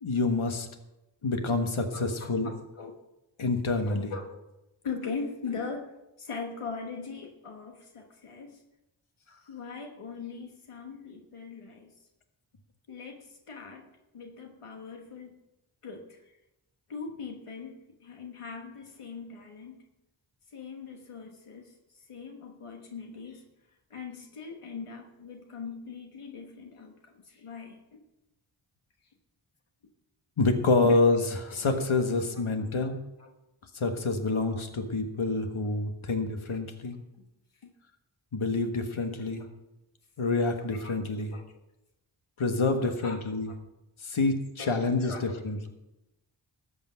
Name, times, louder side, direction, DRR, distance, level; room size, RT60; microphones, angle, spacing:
voice 1, 0.0-0.7 1.2-2.5 3.4-4.1 30.4-31.2 31.5-33.0 33.7-37.0 38.3-39.5 40.2-41.3 42.4-43.5 44.0-45.7, left 3 dB, 70° left, 6 dB, 1.6 m, -27 dB
voice 2, 1.9-3.0 3.8-4.4 4.8-8.6 9.5-11.9 12.9-13.9 14.1-15.3 15.8-16.4 16.9-19.8 20.5-23.5 23.9-28.1 30.8-31.5 33.2-33.3 34.3-34.4 37.6-37.7 39.0-39.3 40.7-40.9 41.3-41.6 42.8-43.2 43.4-43.5 44.6-45.4, left 5 dB, 90° left, 2 dB, 1.4 m, -41 dB
14.0 x 8.5 x 5.7 m, 0.95 s
cardioid pair, 50°, 50 cm